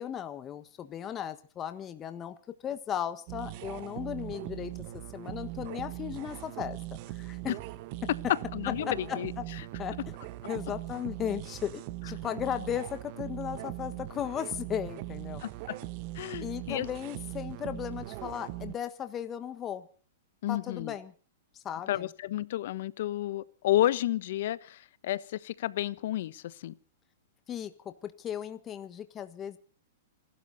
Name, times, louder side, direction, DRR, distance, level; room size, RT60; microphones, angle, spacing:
voice 1, 0.0-2.4 2.6-6.8 7.1-7.5 8.9-9.4 9.8-10.1 10.5-15.4 16.4-19.9 20.5-21.1 21.6-22.1 27.5-29.6, left 9 dB, 25° left, 1.4 m, -36 dB
sound 1, 3.3-18.7, right 17 dB, 45° right, 1.2 m, -40 dB
voice 2, 8.5-9.3 15.4-15.8 16.1-16.9 20.4-20.9 21.9-26.7, left 14 dB, 60° left, 1.2 m, -31 dB
27.0 x 12.5 x 4.2 m
hypercardioid pair, 135°, 0 cm